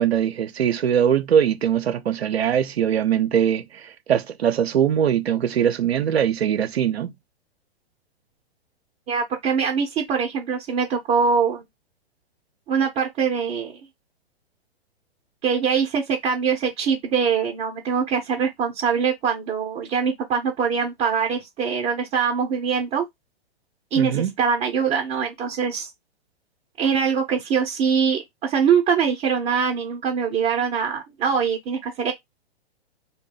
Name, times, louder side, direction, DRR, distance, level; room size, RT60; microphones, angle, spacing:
voice 1, 0.0-7.1 24.0-24.3, right 9 dB, 75° right, 0.5 m, -21 dB
voice 2, 9.1-11.6 12.7-13.7 15.4-23.1 23.9-25.9 26.8-32.1, right 6 dB, 20° right, 0.5 m, -23 dB
2.6 x 2.2 x 3.6 m
figure-of-eight pair, 110°, 32 cm